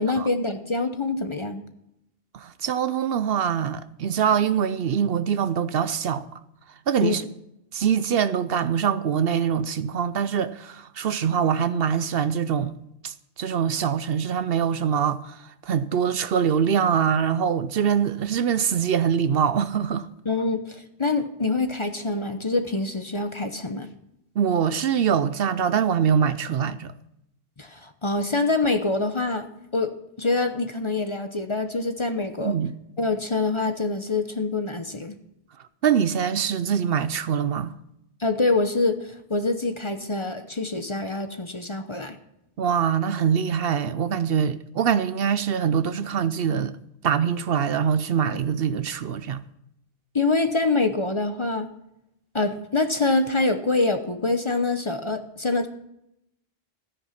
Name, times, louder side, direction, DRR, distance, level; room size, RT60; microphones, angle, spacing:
voice 1, 0.0-1.6 7.0-7.3 20.2-23.9 27.6-29.5 29.7-29.9 30.2-32.5 33.0-35.2 38.2-42.2 50.1-51.7 52.3-55.7, left 3 dB, 30° left, 0.8 m, -25 dB
voice 2, 2.3-6.4 6.9-7.2 7.7-12.7 13.0-20.1 24.4-26.9 32.4-32.8 35.8-37.7 42.6-46.8 47.0-49.4, right 8 dB, 65° right, 0.8 m, -24 dB
13.5 x 9.7 x 5.8 m
omnidirectional pair, 1.1 m